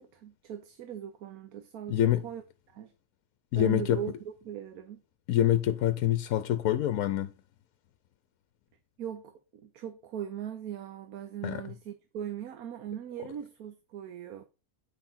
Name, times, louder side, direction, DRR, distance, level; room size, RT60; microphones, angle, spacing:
voice 1, 0.0-2.9 3.5-5.0 9.0-14.4, right 10 dB, 70° right, 1.3 m, -40 dB
voice 2, 1.9-2.2 3.5-4.0 5.3-7.3 11.4-11.6, left 11 dB, 70° left, 1.0 m, -26 dB
9.1 x 5.8 x 4.2 m
omnidirectional pair, 1.6 m